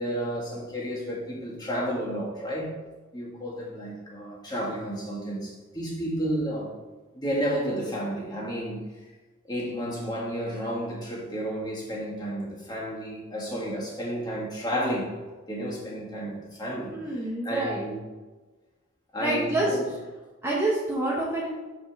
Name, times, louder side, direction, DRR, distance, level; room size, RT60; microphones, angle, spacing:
voice 1, 0.0-2.7 3.1-6.8 7.1-9.0 9.4-15.1 15.5-18.1 19.1-19.9, equal, 20° left, -4 dB, 1.7 m, -32 dB
voice 2, 16.9-17.9 19.2-19.8 20.4-21.5, right 2 dB, 10° right, -5 dB, 0.9 m, -27 dB
5.0 x 4.4 x 6.1 m, 1.2 s
head